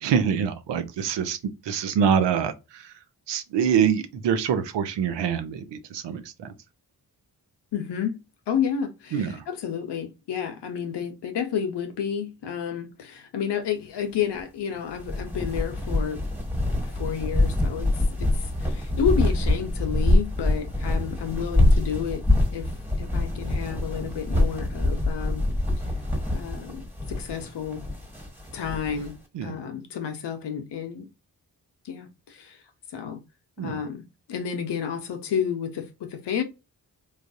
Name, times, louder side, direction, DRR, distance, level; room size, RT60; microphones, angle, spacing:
voice 1, 0.0-2.9 3.3-6.5 9.1-9.4 29.3-29.6 33.6-33.8, right 7 dB, 90° right, 0.6 m, -25 dB
voice 2, 7.7-8.2 8.5-16.2 16.8-17.9 18.2-22.2 22.5-22.7 23.0-25.5 26.3-27.8 28.5-29.1 29.4-31.1 31.8-32.6 32.9-33.2 33.6-36.4, left 8 dB, 75° left, 0.7 m, -30 dB
sound 1, 14.9-29.1, left 1 dB, 5° right, 1.4 m, -25 dB
3.3 x 2.3 x 2.6 m
supercardioid pair, 40°, 41 cm